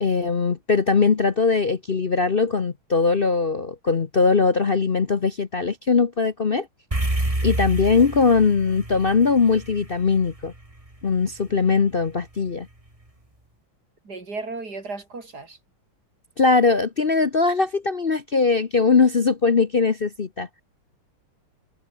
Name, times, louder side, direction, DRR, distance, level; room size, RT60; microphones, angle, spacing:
voice 1, 0.0-6.7 7.4-10.5 11.0-12.7 16.4-20.5, left 4 dB, 45° left, 0.7 m, -20 dB
sound 1, 6.9-11.4, right 1 dB, 15° right, 3.4 m, -29 dB
voice 2, 14.0-15.6, right 3 dB, 45° right, 4.9 m, -35 dB
omnidirectional pair, 2.3 m